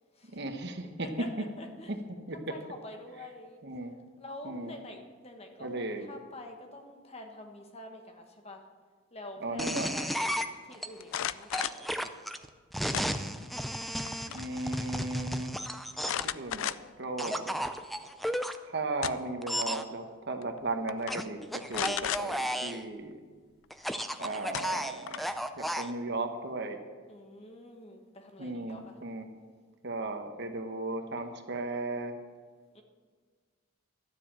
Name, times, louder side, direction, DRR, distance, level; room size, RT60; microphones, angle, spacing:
voice 1, 0.3-1.1 1.9-2.0 2.3-2.6 3.6-3.9 4.4-4.7 5.6-6.1 9.4-9.9 14.3-15.5 16.2-17.6 18.6-23.2 24.2-25.3 25.6-26.8 28.4-29.3 29.8-32.1, right 2 dB, 55° right, 6 dB, 1.1 m, -36 dB
voice 2, 1.0-1.9 2.5-3.6 4.2-8.7 9.1-12.1 22.0-22.8 27.1-29.0 32.7-32.8, left 1 dB, 30° left, 4 dB, 1.2 m, -47 dB
sound 1, 9.6-10.9 11.5-16.3 17.2-18.6 19.4-19.8 21.1-22.8 23.7-25.9, equal, ahead, 0.4 m, -33 dB
sound 2, 11.0-11.9 12.9-13.5 13.9-14.5 14.7-14.8 16.0-17.0 17.6-17.7 18.7-19.4 20.4-20.6 20.9-21.2 21.7-22.2 24.0-24.1 24.5-25.4, left 10 dB, 70° left, 0.4 m, -35 dB
12.5 x 7.6 x 7.4 m, 1.5 s
head